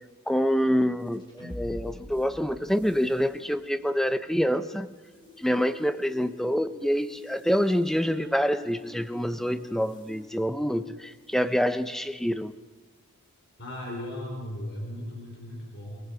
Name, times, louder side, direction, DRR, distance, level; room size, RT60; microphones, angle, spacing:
voice 1, 0.3-4.9 5.4-12.5, equal, ahead, 11 dB, 0.7 m, -26 dB
sound 1, 1.0-11.5, equal, 20° left, 4.8 m, -47 dB
voice 2, 13.6-16.0, left 1 dB, 55° left, 0 dB, 4.0 m, -37 dB
29.0 x 20.0 x 5.0 m, 1.3 s
head